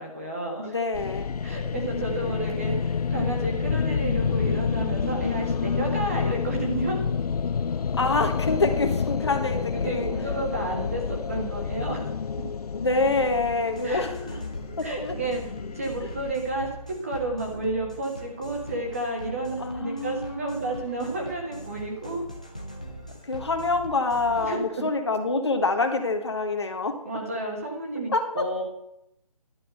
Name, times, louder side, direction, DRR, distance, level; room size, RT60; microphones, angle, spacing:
voice 1, 0.0-0.8 1.4-7.0 9.7-12.1 13.8-14.4 14.8-15.4 15.7-22.2 24.4-24.8 27.0-28.1 28.4-28.6, right 2 dB, 20° right, 0 dB, 1.7 m, -31 dB
voice 2, 0.6-1.3 8.0-10.1 12.7-14.2 15.0-15.1 19.6-20.8 23.2-26.9 28.1-28.4, left 3 dB, 45° left, 5 dB, 1.6 m, -26 dB
sound 1, 0.9-16.3, left 6 dB, 75° left, 0.5 m, -29 dB
sound 2, 13.5-24.5, equal, 10° left, 0.5 m, -41 dB
11.5 x 6.1 x 8.1 m, 0.81 s
hypercardioid pair, 180°, 20 cm